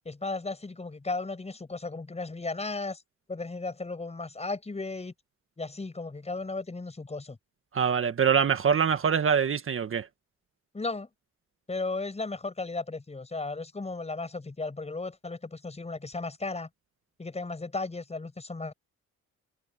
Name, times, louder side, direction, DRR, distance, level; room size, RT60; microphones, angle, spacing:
voice 1, 0.0-3.0 3.3-5.1 5.6-7.4 10.7-11.1 11.7-16.7 17.2-18.7, left 3 dB, 20° left, 6.3 m, -35 dB
voice 2, 7.7-10.1, right 7 dB, 45° right, 1.6 m, -24 dB
cardioid pair, 90°, 30 cm